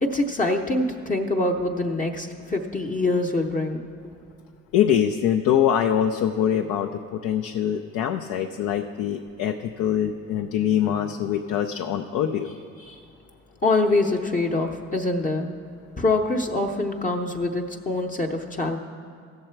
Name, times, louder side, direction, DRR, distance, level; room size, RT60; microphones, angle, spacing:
voice 1, 0.0-3.8 13.6-15.5 16.0-18.8, left 2 dB, 25° left, 2 dB, 0.7 m, -24 dB
voice 2, 4.7-13.0, left 9 dB, 90° left, 5 dB, 0.5 m, -24 dB
15.5 x 6.7 x 4.5 m, 2.3 s
cardioid pair, 90°, 30 cm